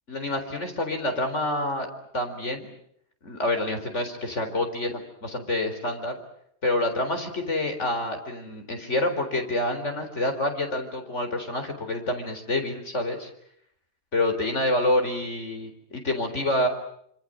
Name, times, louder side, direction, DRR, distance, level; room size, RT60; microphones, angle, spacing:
voice 1, 0.1-1.9 2.1-2.7 3.2-6.1 6.6-13.3 14.1-16.7, left 1 dB, 70° left, 5 dB, 4.5 m, -27 dB
27.0 x 26.5 x 7.7 m, 0.70 s
omnidirectional pair, 1.3 m